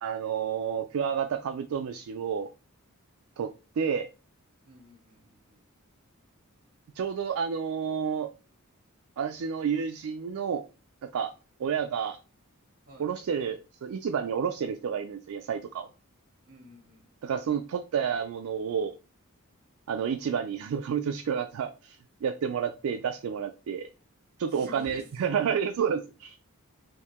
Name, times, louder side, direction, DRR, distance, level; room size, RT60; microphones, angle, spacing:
voice 1, 0.0-2.5 3.4-3.5 3.8-4.1 7.0-8.3 9.2-10.6 11.0-11.3 11.6-12.2 13.0-15.9 17.2-19.0 19.9-23.9 24.4-26.4, right 7 dB, 70° right, 0.3 m, -30 dB
voice 2, 4.6-5.6 12.9-13.1 16.4-17.0 24.5-25.5, equal, 45° right, 1.6 m, -49 dB
4.6 x 2.6 x 3.5 m
head